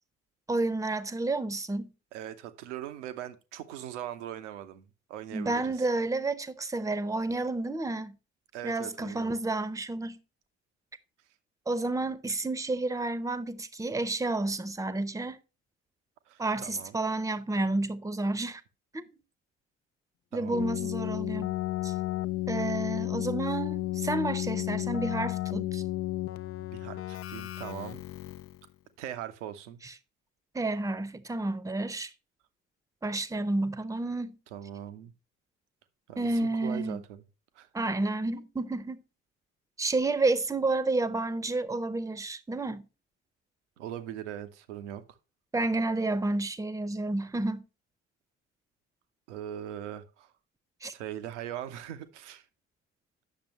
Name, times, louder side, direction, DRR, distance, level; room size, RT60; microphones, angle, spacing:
voice 1, 0.5-1.9 5.3-8.1 8.6-10.2 11.7-15.4 16.4-18.6 18.9-19.0 20.3-21.5 21.8-21.9 22.5-25.8 29.8-29.9 30.5-32.1 33.0-34.4 36.2-37.0 37.7-39.0 39.8-42.8 45.5-47.6 50.8-50.9, right 2 dB, 10° right, 0.8 m, -30 dB
voice 2, 2.1-5.8 8.5-9.4 16.3-17.0 20.3-20.7 26.6-28.0 29.0-29.8 34.5-35.1 36.1-37.2 37.5-37.7 43.8-45.0 49.3-50.3 50.9-52.5, right 11 dB, 75° right, 0.9 m, -41 dB
Keyboard (musical), 20.5-28.6, left 17 dB, 40° left, 0.5 m, -33 dB
9.5 x 6.8 x 3.0 m
figure-of-eight pair, 50°, 36 cm